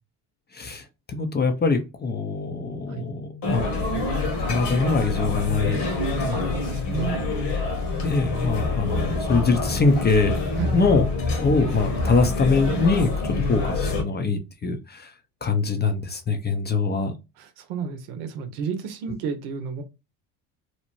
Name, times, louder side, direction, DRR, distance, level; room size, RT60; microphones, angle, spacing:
voice 1, 0.5-4.0 4.4-5.9 6.2-6.5 7.0-7.1 8.0-10.4 10.7-15.1 15.4-17.2, left 4 dB, 20° left, 0.5 m, -24 dB
sound 1, 3.4-14.0, left 3 dB, 60° left, 1.2 m, -26 dB
voice 2, 6.3-7.2 10.6-10.8 17.4-19.8, right 6 dB, 75° right, 0.7 m, -32 dB
2.8 x 2.1 x 2.9 m
hypercardioid pair, 65°, 48 cm